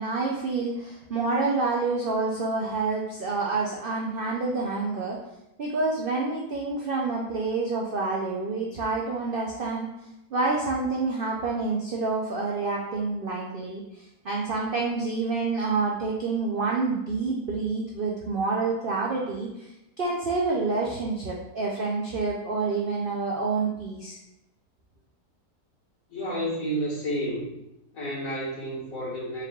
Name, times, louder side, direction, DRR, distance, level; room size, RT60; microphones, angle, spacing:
voice 1, 0.0-5.2 5.6-9.9 10.3-13.8 14.2-19.7 20.0-24.2, right 3 dB, 85° right, -3 dB, 0.4 m, -28 dB
voice 2, 26.1-27.6 27.9-29.4, right 1 dB, 60° left, -7 dB, 2.0 m, -30 dB
4.8 x 3.4 x 2.3 m, 0.88 s
omnidirectional pair, 1.7 m